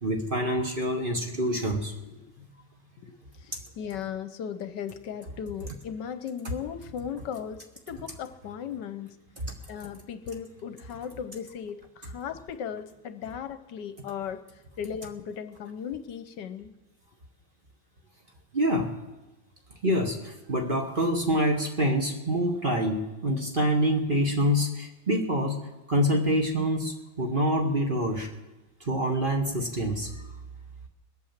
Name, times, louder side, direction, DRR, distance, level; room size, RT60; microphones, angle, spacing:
voice 1, 0.0-1.9 9.4-9.5 18.5-18.9 19.8-25.6 25.9-28.3 28.8-30.1, equal, 30° right, 2 dB, 1.3 m, -26 dB
voice 2, 2.1-2.5 3.0-9.2 9.7-16.7, left 8 dB, 70° left, 10 dB, 1.3 m, -37 dB
20.5 x 8.6 x 7.3 m, 1.1 s
omnidirectional pair, 2.1 m